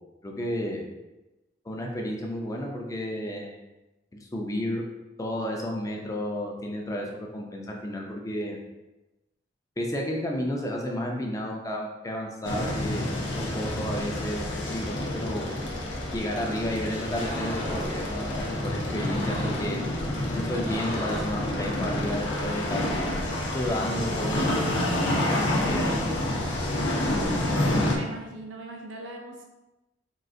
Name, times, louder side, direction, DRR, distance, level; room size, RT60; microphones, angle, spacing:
voice 1, 0.2-0.8 1.7-3.6 4.2-4.8 5.2-8.6 9.8-15.4 16.1-20.0 20.3-22.8 23.5-25.0 25.3-26.2 26.9-27.6, left 1 dB, 20° left, 0 dB, 0.4 m, -32 dB
sound 1, 12.4-28.0, left 1 dB, 75° left, 0.6 m, -28 dB
sound 2, 17.0-18.0 18.9-19.7 20.4-21.4, equal, 35° left, 0.9 m, -37 dB
voice 2, 27.4-29.4, right 2 dB, 85° right, 1 dB, 0.4 m, -40 dB
3.8 x 2.4 x 2.5 m, 1.0 s
head